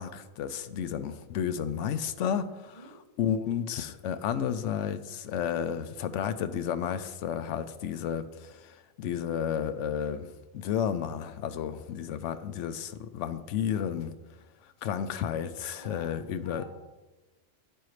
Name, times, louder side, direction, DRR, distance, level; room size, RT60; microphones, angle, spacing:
voice 1, 0.0-2.9 3.2-10.3 10.5-14.1 14.8-16.6, left 8 dB, 80° left, 0.9 m, -32 dB
voice 2, 2.6-3.0 15.7-16.1 16.4-16.6, equal, 40° left, 2.5 m, -49 dB
9.0 x 8.7 x 3.2 m
omnidirectional pair, 1.2 m